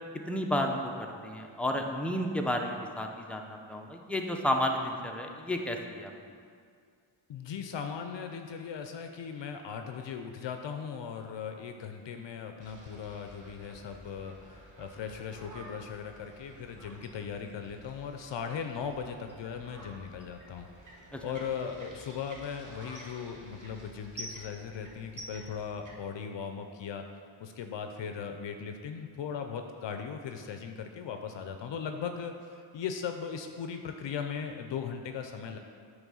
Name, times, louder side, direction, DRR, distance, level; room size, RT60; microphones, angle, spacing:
voice 1, 0.3-6.1 21.1-21.2, left 1 dB, 5° left, 2 dB, 0.5 m, -32 dB
voice 2, 7.3-20.7 21.2-27.0 27.4-35.6, left 7 dB, 60° left, 6 dB, 0.5 m, -38 dB
sound 1, 12.6-25.9, right 1 dB, 40° right, 1.2 m, -50 dB
9.0 x 3.2 x 6.2 m, 2.2 s
wide cardioid pair, 125°, 49 cm